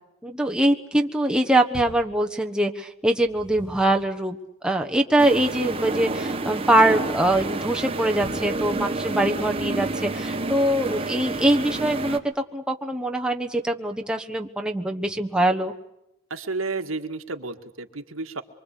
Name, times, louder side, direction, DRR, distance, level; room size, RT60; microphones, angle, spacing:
voice 1, 0.2-4.4 4.6-12.2 12.5-15.7, right 1 dB, 5° right, 2 dB, 1.3 m, -23 dB
sound 1, 1.7-2.1 3.0-4.1 8.2-8.6 9.2-9.9, left 1 dB, 70° left, 7.5 m, -42 dB
sound 2, 5.2-12.2, right 2 dB, 30° right, 1.4 m, -29 dB
voice 2, 16.3-18.4, right 3 dB, 85° right, 6 dB, 1.8 m, -31 dB
25.5 x 24.5 x 8.4 m, 0.85 s
head